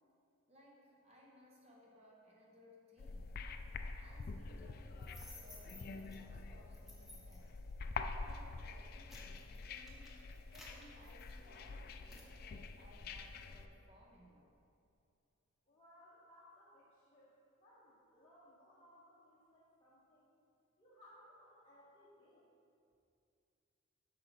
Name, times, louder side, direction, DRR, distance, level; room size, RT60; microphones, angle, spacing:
voice 1, 0.5-3.6 4.0-7.6 8.1-10.1 10.5-14.5, left 1 dB, 30° right, -3 dB, 1.0 m, -63 dB
sound 1, 3.0-13.7, left 4 dB, 45° left, 0.3 m, -47 dB
sound 2, 5.0-6.2 6.7-7.5 8.1-8.3 8.8-11.6 12.1-12.3, left 1 dB, ahead, 0.9 m, -57 dB
voice 2, 15.7-20.3 20.8-22.5, left 1 dB, 25° left, -10 dB, 1.1 m, -63 dB
8.3 x 5.9 x 4.1 m, 2.5 s
head